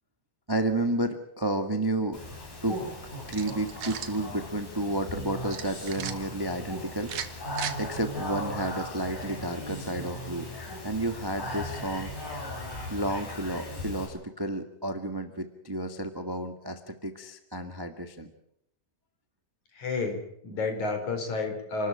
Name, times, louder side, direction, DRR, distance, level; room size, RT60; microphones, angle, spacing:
voice 1, 0.5-2.2 2.6-2.8 3.3-7.5 7.8-10.5 10.8-12.1 12.9-18.3, right 1 dB, 30° right, 7 dB, 0.4 m, -31 dB
Speech, 2.1-14.1, left 1 dB, 75° left, 9.0 m, -38 dB
sound 1, 3.3-4.2 5.5-6.1 7.0-7.8, right 9 dB, 55° right, 2.2 m, -36 dB
voice 2, 19.7-21.9, left 3 dB, 60° left, 6 dB, 5.5 m, -31 dB
29.5 x 13.0 x 8.9 m, 0.75 s
omnidirectional pair, 3.9 m